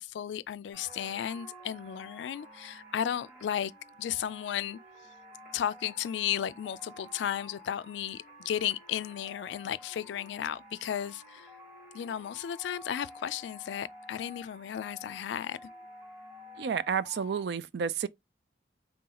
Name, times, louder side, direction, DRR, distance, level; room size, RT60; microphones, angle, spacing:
voice 1, 0.0-3.7 4.0-4.8 5.5-11.5 11.9-15.7, left 10 dB, 80° left, 0.3 m, -34 dB
sound 1, 0.7-17.4, left 1 dB, 5° right, 1.3 m, -51 dB
voice 2, 16.6-18.1, right 7 dB, 65° right, 0.3 m, -31 dB
3.8 x 3.7 x 2.8 m
head